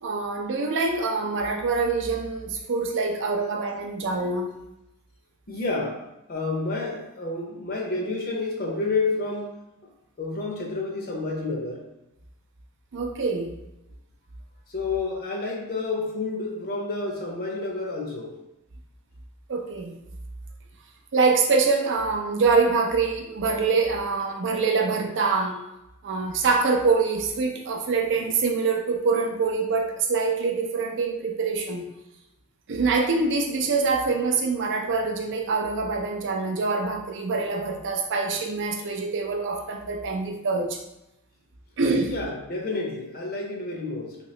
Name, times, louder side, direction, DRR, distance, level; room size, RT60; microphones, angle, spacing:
voice 1, 0.0-4.5 12.9-13.5 19.5-19.9 21.1-25.6 26.0-31.8 32.7-40.8 41.8-42.1, right 4 dB, 55° right, 3 dB, 0.5 m, -25 dB
voice 2, 5.5-6.0 6.3-9.9 10.2-11.8 14.7-18.4 42.0-44.2, left 3 dB, 45° left, 0 dB, 0.6 m, -29 dB
2.9 x 2.9 x 3.1 m, 0.89 s
head